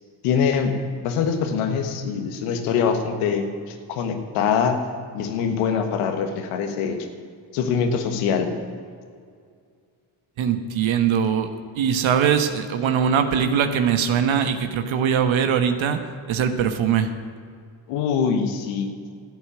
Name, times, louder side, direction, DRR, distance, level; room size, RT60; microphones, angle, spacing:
voice 1, 0.2-0.7 1.0-3.4 3.9-4.8 5.1-7.1 7.5-8.6 17.9-18.9, left 6 dB, 85° left, 6 dB, 1.6 m, -23 dB
voice 2, 10.4-11.5 11.7-16.0 16.3-17.1, right 7 dB, 65° right, 7 dB, 1.3 m, -21 dB
12.5 x 8.4 x 9.3 m, 2.2 s
supercardioid pair, 65°, 50 cm